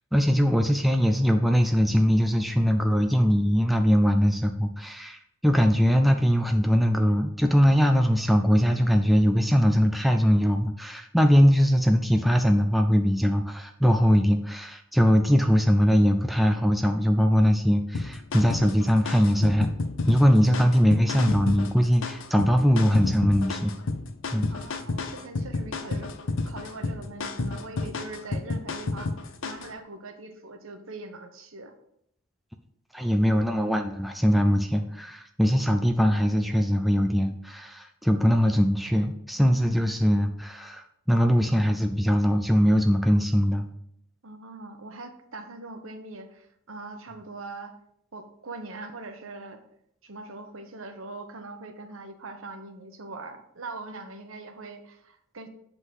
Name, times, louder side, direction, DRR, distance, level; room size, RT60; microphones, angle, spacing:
voice 1, 0.1-5.2 5.4-19.7 20.1-23.7 24.3-24.5 32.9-43.6, equal, ahead, 4 dB, 0.4 m, -21 dB
sound 1, 17.9-29.7, left 3 dB, 60° left, 0.6 m, -31 dB
voice 2, 24.5-26.1 26.5-29.1 29.4-31.7 44.2-47.8 48.1-49.6 50.0-55.5, right 3 dB, 70° right, 7 dB, 1.0 m, -41 dB
8.0 x 3.9 x 6.1 m, 0.73 s
head